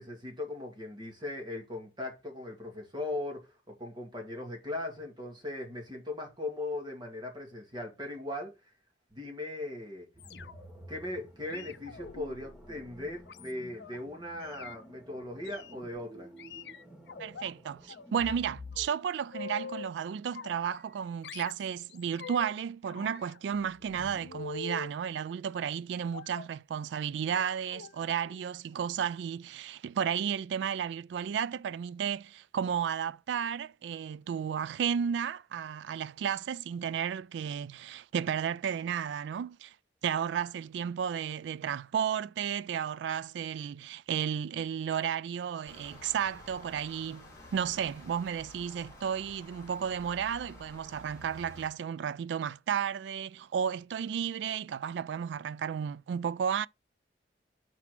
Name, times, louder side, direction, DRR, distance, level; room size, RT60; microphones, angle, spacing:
voice 1, 0.0-8.5 9.1-10.1 10.9-16.3, left 2 dB, 25° right, 2.3 m, -39 dB
sound 1, 10.1-18.8, left 1 dB, 5° right, 1.5 m, -51 dB
sound 2, 10.2-10.8 11.5-14.0 14.4-14.8 15.4-15.7 16.4-17.5 17.9-18.4 18.7-19.9 20.3-21.0 21.2-22.5 22.9-24.9 26.1-26.6 27.2-27.4 27.7-27.9 28.2-28.4 28.7-28.8, left 5 dB, 65° left, 0.5 m, -45 dB
voice 2, 17.2-39.7 40.0-56.7, right 8 dB, 75° right, 0.3 m, -33 dB
sound 3, 45.6-51.7, left 1 dB, 15° left, 3.4 m, -51 dB
5.8 x 4.4 x 6.0 m
head